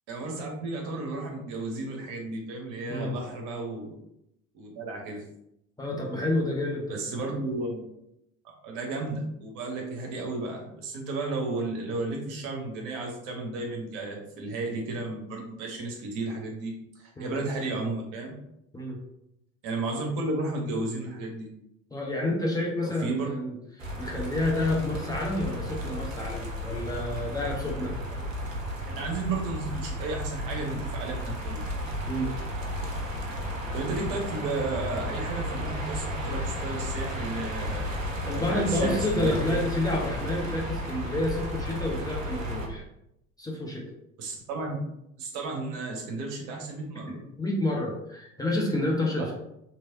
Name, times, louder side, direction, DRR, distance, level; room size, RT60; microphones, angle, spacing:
voice 1, 0.1-3.9 4.5-5.2 6.9-7.9 8.4-18.3 19.6-21.5 22.8-23.3 28.1-28.5 28.9-31.6 33.7-38.0 38.3-39.6 44.2-44.8 45.2-47.1 49.2-49.3, right 2 dB, 50° right, 1 dB, 0.8 m, -33 dB
voice 2, 5.8-7.0 17.2-17.4 18.7-19.0 21.9-28.0 32.1-32.3 38.3-42.8 43.4-43.9 47.1-49.3, left 1 dB, 10° left, -3 dB, 0.6 m, -29 dB
sound 1, 23.8-42.7, equal, 85° right, 0.5 m, -33 dB
3.1 x 2.7 x 2.6 m, 0.80 s
figure-of-eight pair, 60°, 38 cm